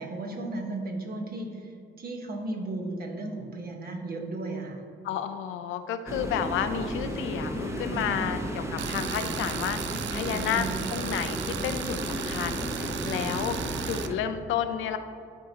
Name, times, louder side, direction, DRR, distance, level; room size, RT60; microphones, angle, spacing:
voice 1, 0.0-4.8 7.9-8.4 10.3-10.8 13.2-13.4, right 2 dB, 50° right, 2 dB, 1.2 m, -35 dB
voice 2, 5.0-13.6 13.9-15.0, left 9 dB, 80° left, 9 dB, 0.5 m, -31 dB
sound 1, 6.1-14.1, equal, 15° right, 0.8 m, -34 dB
Tools, 8.8-14.1, right 10 dB, 65° right, 0.4 m, -36 dB
11.0 x 4.5 x 2.8 m, 2.4 s
cardioid pair, 90°, 20 cm